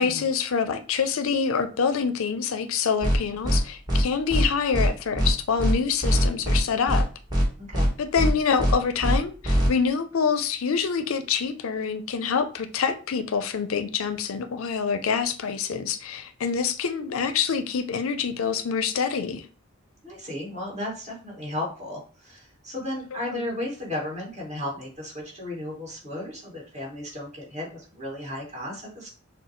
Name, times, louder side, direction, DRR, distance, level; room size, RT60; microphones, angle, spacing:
voice 1, 0.0-7.1 8.0-19.4 23.3-23.5, left 6 dB, 75° left, 0.5 m, -26 dB
sound 1, 3.0-3.2 3.4-3.6 3.9-4.0 4.3-4.4 4.7-4.9 5.2-5.3 5.6-5.7 6.0-6.6 6.9-7.0 7.3-7.4 7.7-7.9 8.2-8.3 8.6-8.7 9.0-9.2 9.4-9.7, equal, 20° right, 1.4 m, -21 dB
voice 2, 7.6-7.9 20.0-29.1, left 1 dB, 35° right, 2.0 m, -34 dB
6.1 x 2.3 x 3.0 m
head